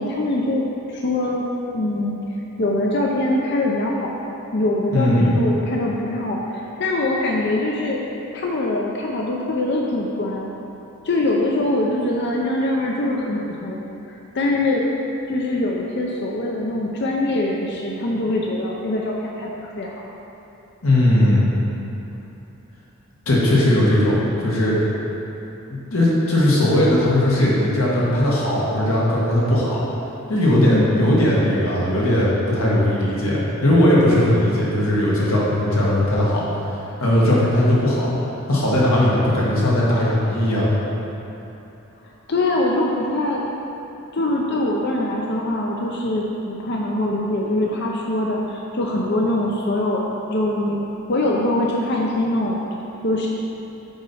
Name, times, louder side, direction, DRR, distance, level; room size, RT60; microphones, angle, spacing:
voice 1, 0.0-1.4 1.7-2.2 2.6-8.0 8.3-10.5 11.0-13.8 14.1-14.9 15.3-20.0 30.7-31.2 42.0-43.4 44.1-50.0 50.3-52.6 53.0-53.3, left 1 dB, 50° left, -2 dB, 0.6 m, -23 dB
voice 2, 4.9-5.4 20.8-21.5 23.3-24.8 25.7-29.8 30.3-36.4 37.0-38.1 38.5-40.7, left 1 dB, 80° left, -6 dB, 1.8 m, -18 dB
8.0 x 4.2 x 5.5 m, 3.0 s
head